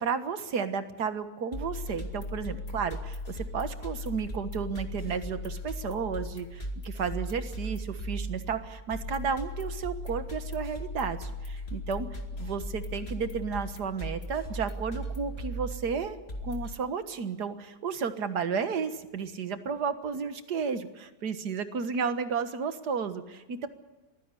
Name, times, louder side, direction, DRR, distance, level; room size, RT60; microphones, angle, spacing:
voice 1, 0.0-12.1 12.4-23.7, right 6 dB, 90° right, 10 dB, 2.0 m, -33 dB
sound 1, 1.5-16.7, left 1 dB, 40° left, 2.5 m, -37 dB
22.5 x 16.0 x 9.8 m, 1.2 s
omnidirectional pair, 1.7 m